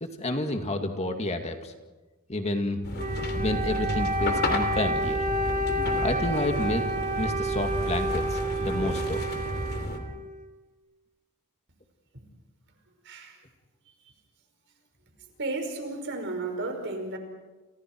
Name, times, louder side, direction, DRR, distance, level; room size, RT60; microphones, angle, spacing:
voice 1, 0.0-1.7 2.3-2.8 3.4-5.2 6.0-6.8 7.2-9.3, left 1 dB, 30° left, 5 dB, 2.2 m, -30 dB
sound 1, 2.8-10.0, left 1 dB, 50° left, 2.9 m, -32 dB
Wind instrument woodwind instrument, 3.0-10.5, right 1 dB, 35° right, 2.8 m, -30 dB
voice 2, 13.0-13.4 14.0-14.1 15.4-17.2, right 2 dB, 60° right, 4 dB, 5.5 m, -33 dB
30.0 x 30.0 x 4.7 m, 1.2 s
head